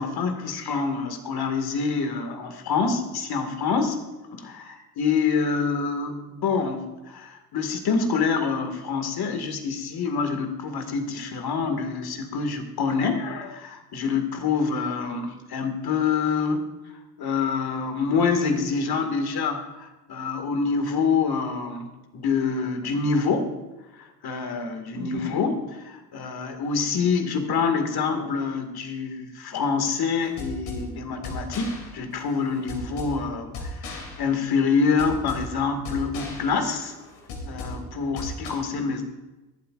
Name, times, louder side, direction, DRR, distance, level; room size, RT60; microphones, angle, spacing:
voice 1, 0.0-4.0 4.3-16.7 17.2-23.5 24.0-37.0 37.5-39.0, left 5 dB, 55° left, 6 dB, 2.2 m, -26 dB
sound 1, 30.2-38.5, left 2 dB, 80° left, 2.9 m, -37 dB
20.0 x 12.0 x 2.6 m, 1.1 s
hypercardioid pair, 55°, 44 cm